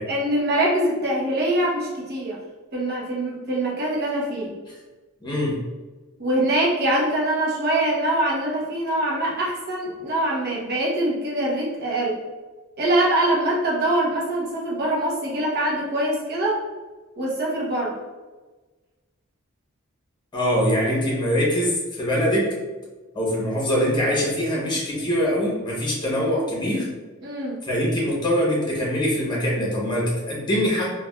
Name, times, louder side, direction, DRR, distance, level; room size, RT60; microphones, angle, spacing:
voice 1, 0.1-2.4 2.7-4.5 6.2-12.2 12.8-16.6 17.2-18.0 27.2-27.6, right 1 dB, 50° right, -4 dB, 0.8 m, -23 dB
voice 2, 5.2-5.6 20.3-22.5 23.1-26.9 27.6-30.9, equal, 20° left, -4 dB, 0.8 m, -23 dB
3.2 x 2.3 x 2.2 m, 1.2 s
head